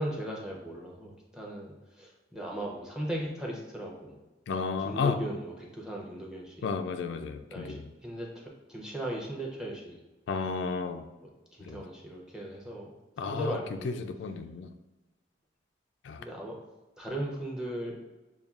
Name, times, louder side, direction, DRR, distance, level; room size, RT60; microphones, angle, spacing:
voice 1, 0.0-4.2 4.8-6.7 7.5-10.0 11.2-11.3 11.6-12.9 13.2-14.0 16.2-16.6 17.0-18.0, right 1 dB, 5° right, -2 dB, 0.6 m, -37 dB
voice 2, 4.5-5.2 6.6-7.8 10.3-11.1 11.6-11.8 13.2-13.6 13.8-14.7 16.0-16.2, left 5 dB, 85° left, 7 dB, 0.3 m, -32 dB
6.8 x 2.3 x 2.3 m, 1.1 s
head